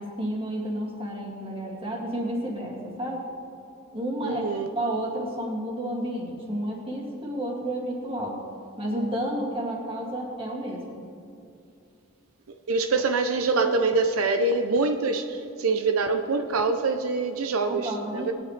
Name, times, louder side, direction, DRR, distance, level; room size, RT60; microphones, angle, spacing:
voice 1, 0.0-3.2 3.9-4.4 4.8-8.4 8.8-11.0 17.7-18.3, right 1 dB, 25° right, -3 dB, 2.3 m, -31 dB
voice 2, 4.2-4.7 12.5-18.3, right 3 dB, 85° right, 6 dB, 0.6 m, -25 dB
19.5 x 9.6 x 3.3 m, 2.6 s
head